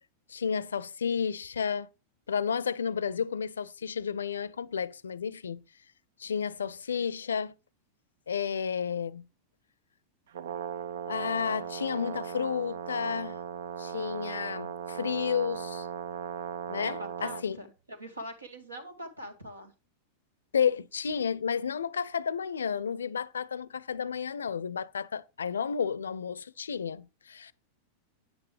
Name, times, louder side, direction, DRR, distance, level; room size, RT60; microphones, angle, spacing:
voice 1, 0.3-1.9 2.3-5.6 6.2-7.5 8.3-9.3 11.1-13.4 13.8-15.9 16.7-17.6 20.5-27.5, left 7 dB, 70° left, 0.5 m, -32 dB
Brass instrument, 10.3-17.4, right 8 dB, 60° right, 0.5 m, -37 dB
voice 2, 16.8-19.7, right 1 dB, 80° right, 2.1 m, -43 dB
9.7 x 8.7 x 3.3 m
figure-of-eight pair, 90°, 0 cm